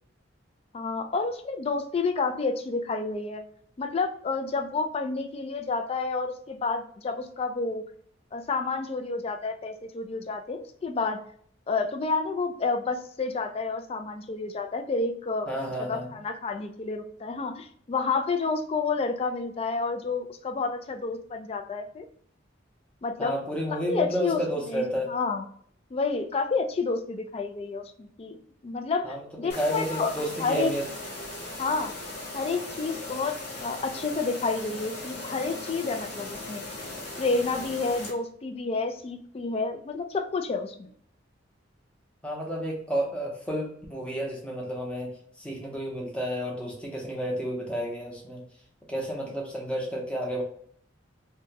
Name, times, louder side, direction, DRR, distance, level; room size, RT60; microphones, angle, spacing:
voice 1, 0.7-3.4 3.8-7.8 8.3-11.2 11.7-15.5 15.8-22.1 23.0-23.4 23.7-24.4 24.7-25.4 25.9-28.4 28.6-30.1 30.4-30.7 31.6-31.9 32.3-36.6 37.2-40.9, left 4 dB, 30° left, 6 dB, 0.3 m, -29 dB
voice 2, 15.5-16.1 23.2-25.1 29.0-30.9 42.2-48.5 48.9-50.4, equal, 5° left, -1 dB, 0.7 m, -31 dB
sound 1, 29.5-38.1, left 2 dB, 55° left, 1.1 m, -38 dB
2.9 x 2.2 x 2.8 m, 0.62 s
head